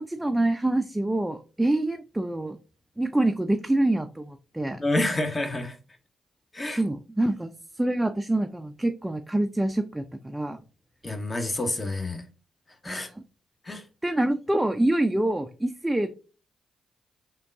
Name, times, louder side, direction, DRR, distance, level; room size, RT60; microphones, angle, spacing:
voice 1, 0.0-2.6 3.0-4.8 6.7-7.5 7.8-10.6 12.9-13.2 14.0-16.2, right 1 dB, 10° right, 6 dB, 0.4 m, -26 dB
voice 2, 4.8-5.7 6.5-6.8 11.0-12.2 12.8-13.1 13.7-13.8, left 2 dB, 30° left, 5 dB, 0.9 m, -28 dB
3.5 x 2.2 x 3.6 m, 0.34 s
hypercardioid pair, 40°, 0 cm